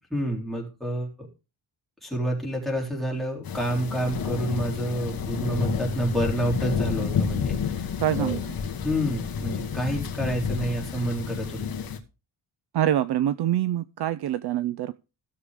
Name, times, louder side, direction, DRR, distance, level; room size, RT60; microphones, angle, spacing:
voice 1, 0.1-1.3 2.0-7.9 8.2-8.4 8.8-11.6, right 1 dB, ahead, -2 dB, 3.7 m, -28 dB
sound 1, 3.4-12.0, left 6 dB, 45° left, 1.5 m, -30 dB
voice 2, 8.0-8.4 12.7-14.9, right 11 dB, 55° right, 15 dB, 0.6 m, -25 dB
16.0 x 6.8 x 3.6 m, 0.30 s
cardioid pair, 145°, 48 cm